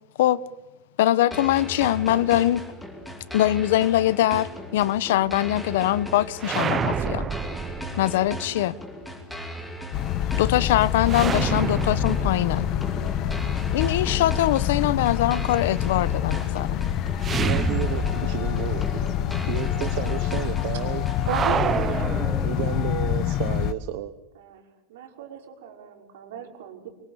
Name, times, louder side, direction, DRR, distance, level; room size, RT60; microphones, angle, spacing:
voice 1, 1.0-2.6 3.3-7.3 8.0-8.8 10.4-12.7 13.7-16.8, left 14 dB, 70° left, 1.0 m, -22 dB
sound 1, 1.3-21.3, equal, ahead, 2.7 m, -37 dB
sound 2, 6.4-8.4 11.0-14.0 17.2-18.6 18.9-19.0 21.2-23.0, right 7 dB, 20° right, 0.9 m, -29 dB
sound 3, 9.9-23.7, left 11 dB, 30° left, 1.1 m, -26 dB
voice 2, 17.4-18.8 19.5-21.0 22.4-24.1, right 14 dB, 50° right, 1.1 m, -32 dB
voice 3, 21.3-22.1 24.4-24.6 24.9-26.9, right 8 dB, 75° right, 5.6 m, -35 dB
25.0 x 25.0 x 8.5 m
supercardioid pair, 180°, 0 cm